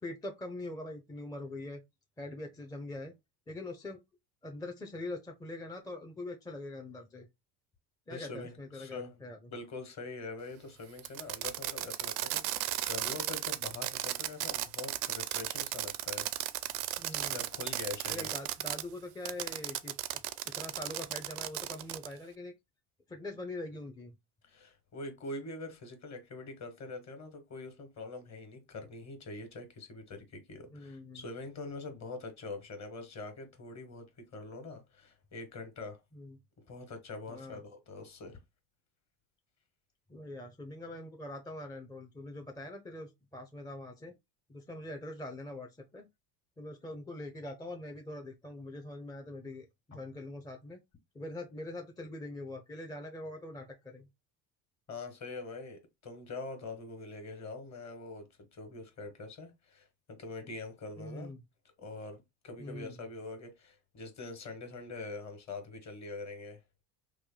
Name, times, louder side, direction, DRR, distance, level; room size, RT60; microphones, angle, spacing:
voice 1, 0.0-1.8 2.2-3.1 3.5-4.0 4.4-7.3 8.1-9.4 17.0-17.4 18.1-22.5 23.1-24.1 30.7-31.3 36.1-36.4 37.3-37.6 40.1-44.2 44.5-46.1 46.6-50.8 51.1-54.1 61.0-61.4 62.6-63.0, left 2 dB, 10° left, 0.5 m, -43 dB
voice 2, 8.1-9.2 9.5-16.3 17.3-18.3 24.4-36.0 36.6-38.4 54.9-61.3 61.8-66.6, left 3 dB, 40° left, 1.5 m, -44 dB
Fireworks, 11.0-18.8 19.3-22.1, right 15 dB, 75° right, 0.5 m, -35 dB
3.1 x 2.2 x 3.8 m
supercardioid pair, 90°, 43 cm